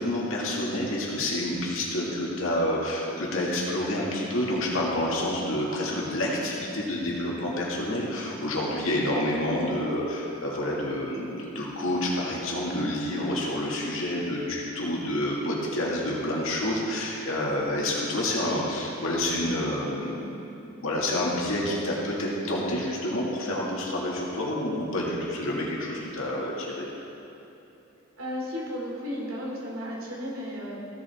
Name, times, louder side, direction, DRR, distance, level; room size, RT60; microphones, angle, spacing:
voice 1, 0.0-20.4 20.8-26.9, left 1 dB, 80° left, -4 dB, 2.0 m, -28 dB
voice 2, 28.2-30.8, equal, 85° right, -4 dB, 2.6 m, -34 dB
15.5 x 7.3 x 3.6 m, 3.0 s
head